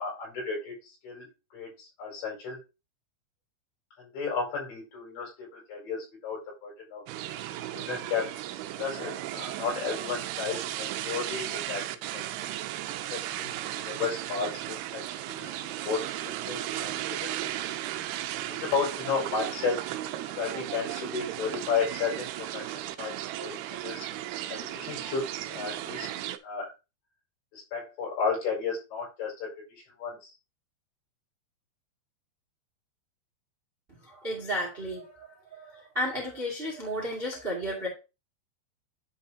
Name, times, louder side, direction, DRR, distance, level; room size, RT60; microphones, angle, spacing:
voice 1, 0.0-2.6 4.0-7.1 7.7-8.3 8.8-11.8 12.1-12.4 12.9-13.6 13.9-17.5 18.1-18.2 18.5-19.8 20.3-24.1 24.5-26.7 27.5-30.3, left 5 dB, 75° left, -2 dB, 7.3 m, -34 dB
sound 1, 7.1-26.4, right 13 dB, 90° right, 2.2 m, -35 dB
voice 2, 33.9-37.9, equal, 25° right, -2 dB, 1.3 m, -33 dB
10.5 x 5.4 x 2.9 m, 0.28 s
omnidirectional pair, 5.2 m